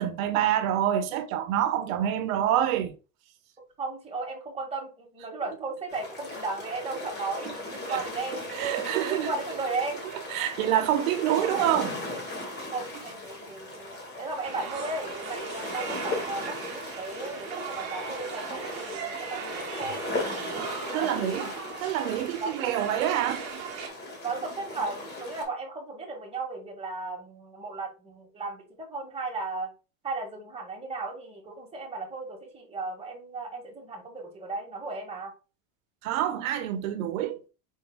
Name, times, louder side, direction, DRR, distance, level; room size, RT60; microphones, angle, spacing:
voice 1, 0.0-2.9 7.4-7.5 7.9-8.0 8.5-9.3 10.3-12.0 20.9-21.4 21.8-23.4 36.0-37.5, right 11 dB, 80° right, 0.9 m, -27 dB
voice 2, 3.8-8.4 9.0-10.0 12.7-20.0 20.9-21.4 22.4-22.5 24.2-29.7 30.0-35.3, right 3 dB, 15° right, 1.7 m, -35 dB
sound 1, 5.9-25.4, left 2 dB, 25° left, 1.8 m, -37 dB
sound 2, 14.4-23.9, right 7 dB, 40° right, 1.1 m, -39 dB
5.2 x 4.3 x 2.2 m
supercardioid pair, 120°, 41 cm